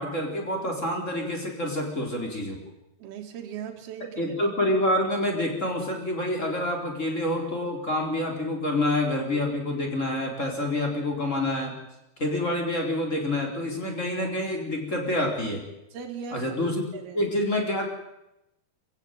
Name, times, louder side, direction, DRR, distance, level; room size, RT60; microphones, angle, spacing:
voice 1, 0.0-2.6 4.2-11.7 12.2-15.6 16.3-16.8 17.1-17.9, left 1 dB, 20° left, 2 dB, 4.0 m, -27 dB
voice 2, 3.0-4.4 15.9-16.4 16.9-17.2, right 7 dB, 70° right, 3 dB, 4.2 m, -38 dB
24.0 x 15.5 x 9.2 m, 0.91 s
omnidirectional pair, 4.7 m